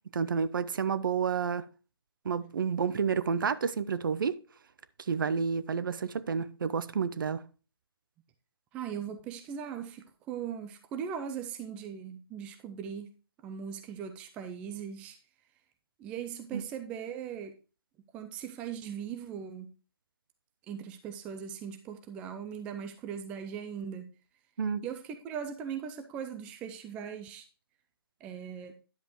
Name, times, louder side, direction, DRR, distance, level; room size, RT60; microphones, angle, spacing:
voice 1, 0.1-1.6 2.2-4.4 5.1-7.4 16.5-16.6 24.6-24.8, right 6 dB, 55° right, 0.7 m, -30 dB
voice 2, 8.7-13.1 13.4-15.2 16.0-17.5 18.1-19.7 20.7-24.1 24.8-27.4 28.2-28.7, right 8 dB, 10° right, 0.4 m, -39 dB
10.5 x 7.3 x 3.1 m
hypercardioid pair, 155°, 13 cm